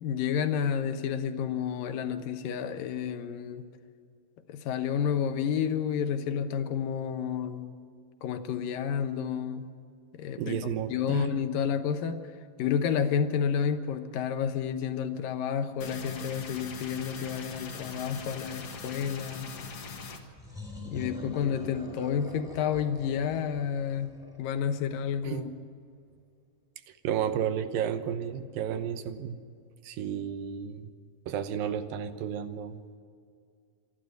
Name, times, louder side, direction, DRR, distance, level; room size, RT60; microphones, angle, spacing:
voice 1, 0.0-3.7 4.5-7.7 8.2-9.7 10.2-12.2 12.6-19.5 20.9-24.1 24.4-25.5, left 7 dB, 80° left, 8 dB, 2.8 m, -30 dB
voice 2, 10.4-11.4 25.2-25.5 27.0-29.3 29.8-30.9 31.3-32.8, right 9 dB, 90° right, 10 dB, 2.8 m, -32 dB
sound 1, 15.8-20.2, left 4 dB, 50° left, 2.4 m, -41 dB
sound 2, 20.4-24.9, left 1 dB, ahead, 5.1 m, -44 dB
26.5 x 11.5 x 9.1 m, 2.3 s
omnidirectional pair, 3.9 m